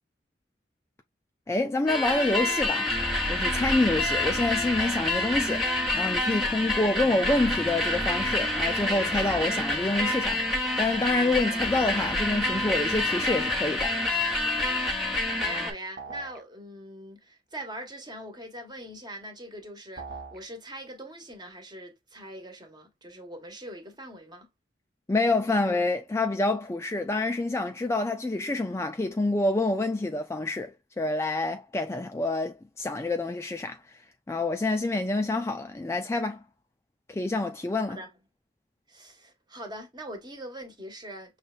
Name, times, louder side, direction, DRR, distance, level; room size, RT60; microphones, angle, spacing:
voice 1, 1.5-2.9 3.3-5.7 5.9-14.0 25.1-34.0 34.3-36.4 37.1-38.0, left 2 dB, 15° left, 0.3 m, -27 dB
sound 1, 1.9-15.7, left 1 dB, ahead, 1.2 m, -27 dB
voice 2, 15.3-24.5 37.9-38.1 38.9-41.4, right 1 dB, 25° right, 1.2 m, -42 dB
sound 2, 16.0-16.4 20.0-20.4, right 5 dB, 60° right, 1.0 m, -40 dB
5.9 x 3.2 x 2.3 m
head